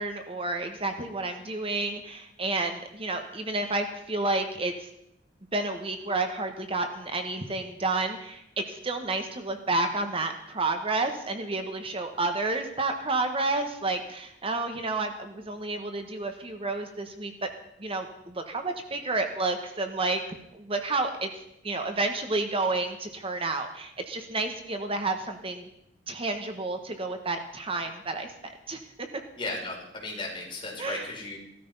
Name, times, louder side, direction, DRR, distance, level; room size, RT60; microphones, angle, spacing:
voice 1, 0.0-4.7 5.5-17.5 17.8-21.3 21.6-25.7 26.1-29.1 30.8-31.1, right 2 dB, 30° right, 6 dB, 1.4 m, -30 dB
voice 2, 29.4-31.4, left 2 dB, 25° left, -2 dB, 5.2 m, -35 dB
16.5 x 13.0 x 5.5 m, 0.77 s
head